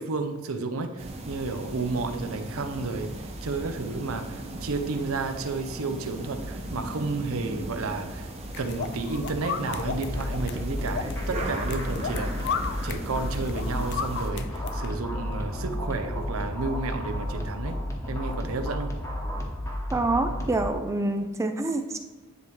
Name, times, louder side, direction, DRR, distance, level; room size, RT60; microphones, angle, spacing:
voice 1, 0.0-8.3 8.6-12.6 12.8-17.8 18.1-18.9, right 3 dB, 80° right, 8 dB, 0.6 m, -32 dB
sound 1, 1.0-14.3, right 1 dB, 30° right, 0.7 m, -38 dB
sound 2, 8.5-15.0, left 6 dB, 55° left, 0.4 m, -35 dB
sound 3, 9.8-20.7, left 1 dB, 15° left, 0.9 m, -32 dB
voice 2, 19.9-22.0, right 2 dB, 15° right, 7 dB, 0.3 m, -26 dB
10.0 x 3.5 x 3.2 m, 1.2 s
head